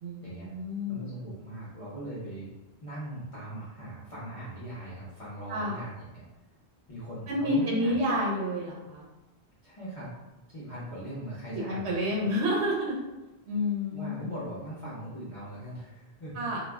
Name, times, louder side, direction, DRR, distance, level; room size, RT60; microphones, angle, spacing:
voice 1, 0.0-1.0 5.5-5.8 7.3-9.1 11.5-13.0 13.5-14.3 16.3-16.6, left 1 dB, 90° right, -3 dB, 0.9 m, -29 dB
voice 2, 0.9-2.5 2.8-6.2 6.9-8.3 9.6-10.1 10.5-12.2 13.9-16.3, right 1 dB, 35° left, -9 dB, 0.7 m, -40 dB
2.3 x 2.0 x 3.4 m, 1.0 s
omnidirectional pair, 1.1 m